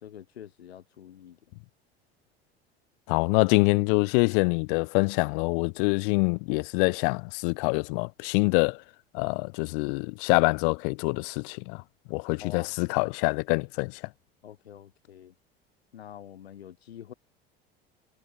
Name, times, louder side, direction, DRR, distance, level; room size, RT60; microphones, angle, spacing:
voice 1, 0.0-1.6 12.4-12.8 14.4-15.3 15.9-17.1, left 10 dB, 80° left, 3.0 m, -46 dB
voice 2, 3.1-8.8 9.1-11.8 12.1-13.9, left 34 dB, 60° left, 0.6 m, -25 dB
hypercardioid pair, 75°, 31 cm